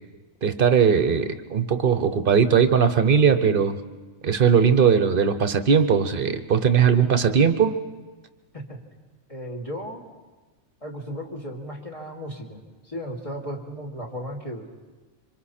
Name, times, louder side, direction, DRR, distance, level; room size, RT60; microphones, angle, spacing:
voice 1, 0.4-3.8 4.2-7.8, right 7 dB, 45° right, 10 dB, 1.0 m, -19 dB
voice 2, 9.3-10.0 10.8-14.7, equal, 25° left, 0 dB, 2.6 m, -35 dB
27.0 x 25.0 x 4.3 m, 1.3 s
omnidirectional pair, 1.4 m